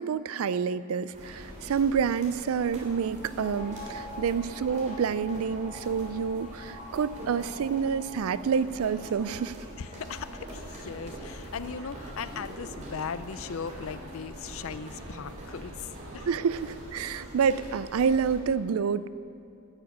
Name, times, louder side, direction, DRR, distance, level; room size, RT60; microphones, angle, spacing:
voice 1, 0.0-9.6 16.3-19.1, right 6 dB, 75° right, 16 dB, 0.4 m, -28 dB
sound 1, 1.1-18.4, right 1 dB, 35° right, 3.1 m, -44 dB
sound 2, 3.3-16.5 16.8-16.9 17.1-17.9, left 1 dB, 30° left, 1.1 m, -49 dB
voice 2, 9.8-16.3, left 6 dB, 70° left, 14 dB, 0.5 m, -38 dB
sound 3, 10.6-16.9, right 1 dB, 60° right, 1.3 m, -47 dB
13.0 x 7.1 x 8.5 m, 2.7 s
head